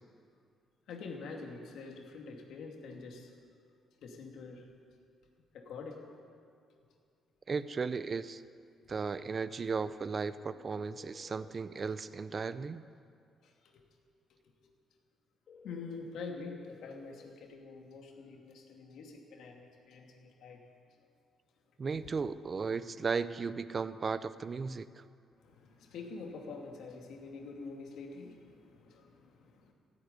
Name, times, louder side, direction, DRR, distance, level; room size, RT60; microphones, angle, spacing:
voice 1, 0.9-3.3 4.0-4.7 5.5-6.0 13.4-13.8 14.3-14.7 15.6-20.6 22.0-22.1 25.4-29.7, left 4 dB, 75° left, 1 dB, 2.6 m, -46 dB
voice 2, 7.5-8.4 8.9-12.8 21.8-25.0, right 5 dB, 40° right, 14 dB, 0.6 m, -35 dB
sound 1, 11.0-11.5 15.5-17.3, left 5 dB, 55° left, 1.1 m, -56 dB
15.5 x 9.5 x 9.7 m, 2.3 s
cardioid pair, 90°, 0 cm